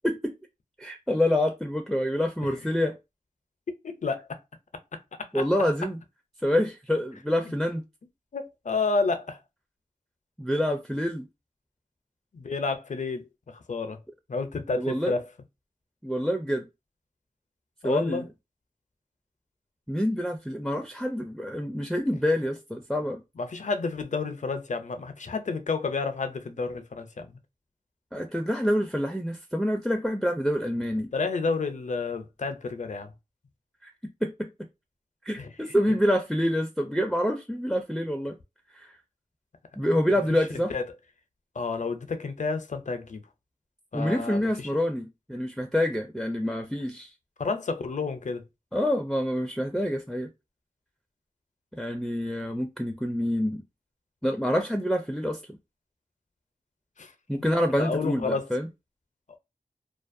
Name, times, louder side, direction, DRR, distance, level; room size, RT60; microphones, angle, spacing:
voice 1, 0.0-0.4 0.8-3.0 5.3-6.0 6.4-7.8 10.4-11.3 14.8-15.2 16.0-16.6 17.8-18.2 19.9-23.2 28.1-31.1 33.8-33.9 34.2-34.5 35.2-38.4 38.7-38.9 39.8-40.7 43.9-47.1 48.7-50.3 51.7-53.6 54.2-55.6 57.3-58.7, equal, ahead, 0.4 m, -27 dB
voice 2, 3.8-4.4 5.2-5.4 8.3-9.4 12.3-14.0 14.3-15.2 17.8-18.3 23.4-27.4 31.1-33.1 35.4-35.5 40.3-40.4 40.7-40.8 41.6-43.2 43.9-44.7 47.4-48.4 57.0-57.1 57.8-58.5, left 4 dB, 55° left, 0.5 m, -30 dB
2.3 x 2.1 x 2.5 m
wide cardioid pair, 45°, 15 cm